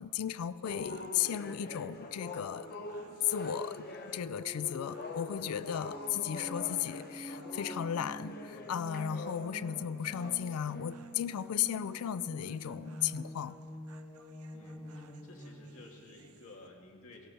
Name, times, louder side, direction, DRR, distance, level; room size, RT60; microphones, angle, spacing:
voice 1, 0.0-2.7 3.2-3.9 4.1-13.6, left 9 dB, 85° left, 15 dB, 0.4 m, -35 dB
sound 1, 0.6-11.0 11.5-11.8 12.4-12.7 13.1-13.4, left 2 dB, 45° left, 0.9 m, -45 dB
sound 2, 0.7-16.7, right 4 dB, 90° right, 0.8 m, -61 dB
sound 3, 1.2-16.1, equal, 15° left, 0.7 m, -48 dB
voice 2, 14.5-17.3, left 2 dB, 65° left, 0 dB, 2.1 m, -54 dB
18.0 x 16.5 x 4.2 m, 2.5 s
head